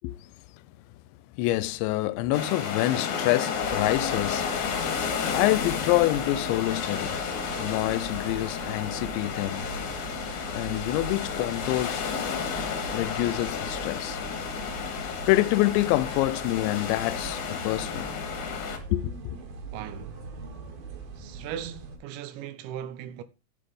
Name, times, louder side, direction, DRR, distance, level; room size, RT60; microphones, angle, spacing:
voice 1, 1.4-4.5 5.3-7.2 7.6-10.1 10.5-12.0 12.9-14.2 14.9-18.1 18.9-19.1, left 17 dB, 90° left, 2.9 m, -27 dB
sound 1, 2.3-18.8, left 7 dB, 60° left, 2.3 m, -32 dB
sound 2, 3.5-22.0, right 4 dB, 60° right, 3.5 m, -41 dB
voice 2, 19.7-20.2 21.2-23.2, right 10 dB, 85° right, 3.2 m, -38 dB
8.8 x 6.7 x 5.3 m
omnidirectional pair, 5.1 m